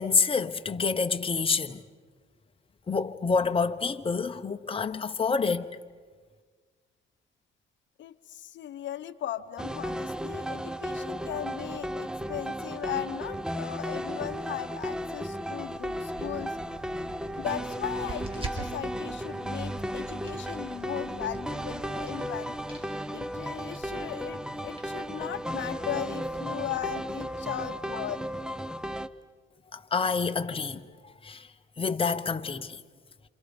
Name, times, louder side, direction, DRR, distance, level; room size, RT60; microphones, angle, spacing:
voice 1, 0.0-1.8 2.9-5.7 29.7-30.8 31.2-31.5 31.8-32.8, left 5 dB, 25° left, 1.1 m, -27 dB
voice 2, 8.0-16.6 17.4-22.5 23.1-28.2, left 11 dB, 70° left, 0.8 m, -37 dB
sound 1, 9.6-29.1, equal, 5° right, 0.9 m, -35 dB
sound 2, 15.6-27.7, right 2 dB, 30° right, 4.8 m, -47 dB
28.0 x 28.0 x 5.3 m
cardioid pair, 90°, 20 cm